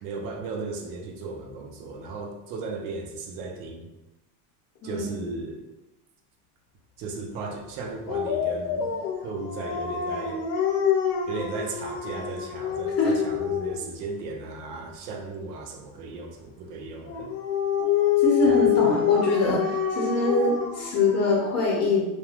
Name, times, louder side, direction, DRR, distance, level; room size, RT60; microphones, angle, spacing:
voice 1, 0.0-3.9 4.8-5.6 7.0-8.9 9.2-10.4 11.3-17.3 18.4-19.0, right 3 dB, 85° right, 3 dB, 0.7 m, -36 dB
Dog, 8.1-13.9 17.1-21.6, left 9 dB, 80° left, 0.7 m, -26 dB
voice 2, 18.2-22.0, left 2 dB, 35° left, -2 dB, 0.7 m, -24 dB
3.1 x 2.3 x 2.4 m, 1.0 s
cardioid pair, 150°, 47 cm